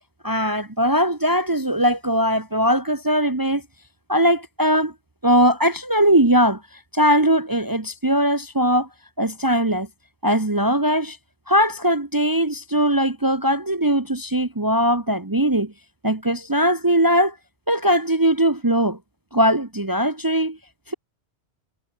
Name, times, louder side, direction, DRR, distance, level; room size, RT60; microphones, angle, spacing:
voice 1, 0.2-3.6 4.1-4.9 5.2-6.6 6.9-8.9 9.2-9.9 10.2-11.2 11.5-15.7 16.0-17.4 17.7-19.0 19.3-20.6 20.9-21.0, equal, 20° right, 1.2 m, -20 dB
omnidirectional pair, 1.2 m